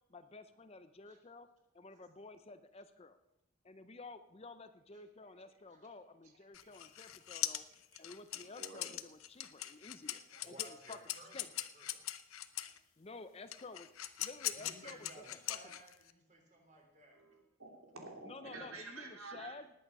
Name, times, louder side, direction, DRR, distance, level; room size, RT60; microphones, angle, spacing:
voice 1, 0.1-1.5 1.7-3.2 3.6-7.6 8.0-11.0 11.3-11.5 13.0-13.9 14.2-15.8 18.2-19.7, left 3 dB, 30° left, 11 dB, 0.5 m, -52 dB
sound 1, 6.5-12.8 13.5-16.1, left 13 dB, 80° left, 0.8 m, -41 dB
voice 2, 7.0-7.4 7.9-8.0 8.3-8.9 10.3-10.4 12.6-12.7 17.1-19.6, right 3 dB, 80° right, 2 dB, 2.8 m, -51 dB
voice 3, 10.4-11.4 11.7-12.0 12.8-12.9 14.5-17.2, right 1 dB, 35° right, 1 dB, 3.5 m, -57 dB
19.0 x 8.6 x 5.3 m, 0.86 s
head